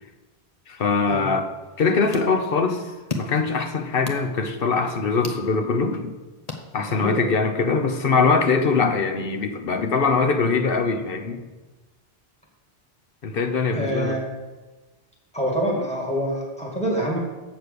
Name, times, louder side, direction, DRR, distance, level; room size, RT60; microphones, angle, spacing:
voice 1, 0.7-1.5 1.8-2.8 3.2-6.1 6.7-11.5 13.2-14.1, left 4 dB, 65° left, 6 dB, 1.1 m, -22 dB
sound 1, 1.6-7.3, left 3 dB, 40° left, 1.0 m, -38 dB
voice 2, 6.9-7.3 13.7-14.3 15.3-17.2, equal, 5° left, -3 dB, 2.1 m, -26 dB
7.9 x 6.4 x 6.8 m, 1.2 s
omnidirectional pair, 1.1 m